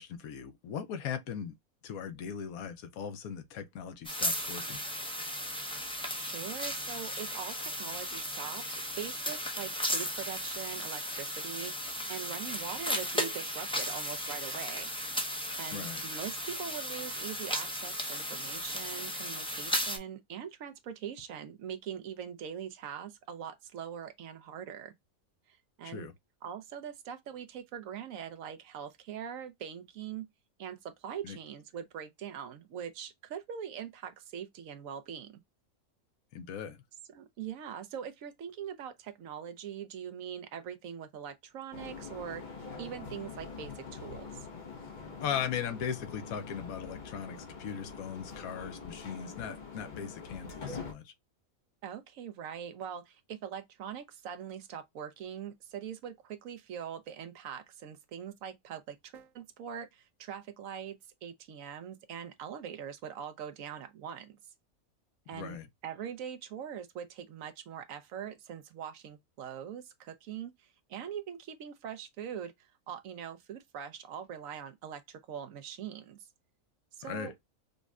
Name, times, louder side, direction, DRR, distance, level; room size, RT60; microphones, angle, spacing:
voice 1, 0.0-1.5 1.8-4.8 15.7-16.0 25.8-26.1 31.2-31.4 36.3-36.8 45.2-51.1 65.3-65.7 77.0-77.3, left 8 dB, 75° left, 1.1 m, -38 dB
sound 1, 4.0-20.0, equal, 5° left, 0.4 m, -35 dB
voice 2, 6.1-8.6 9.0-14.9 15.6-24.9 25.5-26.1 26.4-30.3 30.6-35.4 37.1-42.4 42.8-44.5 51.8-64.3 65.3-65.6 65.8-76.2 76.9-77.3, right 8 dB, 70° right, 1.0 m, -42 dB
sound 2, 41.7-50.9, left 5 dB, 40° left, 0.7 m, -44 dB
5.1 x 2.1 x 2.3 m
omnidirectional pair, 1.5 m